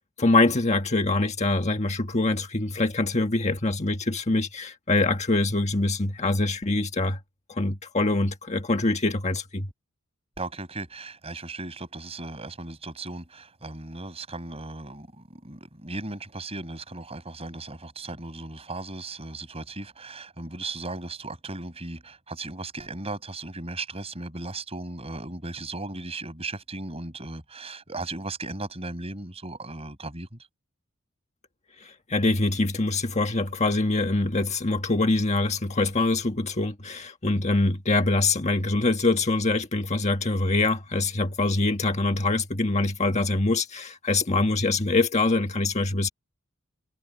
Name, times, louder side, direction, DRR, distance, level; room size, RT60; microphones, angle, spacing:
voice 1, 0.2-7.2 7.5-9.7 31.8-46.1, left 2 dB, 30° left, 1.6 m, -24 dB
voice 2, 10.4-30.4, right 2 dB, 30° right, 6.3 m, -37 dB
head